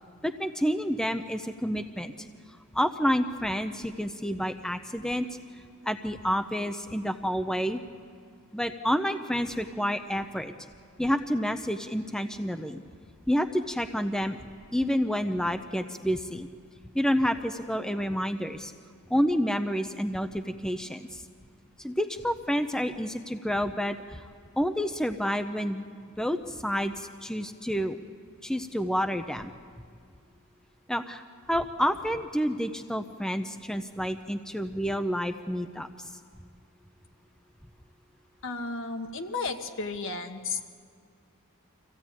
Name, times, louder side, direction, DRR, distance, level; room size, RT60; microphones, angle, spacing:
voice 1, 0.2-2.3 2.7-5.3 5.5-7.8 8.5-10.5 11.0-12.8 13.3-14.4 14.7-16.5 16.9-18.7 19.1-21.2 21.8-24.3 24.6-25.9 26.2-28.0 28.4-29.5 30.9-36.1, equal, 5° left, 7 dB, 0.6 m, -29 dB
voice 2, 38.4-40.6, left 4 dB, 60° left, 6 dB, 1.4 m, -33 dB
25.5 x 16.0 x 8.9 m, 2.1 s
head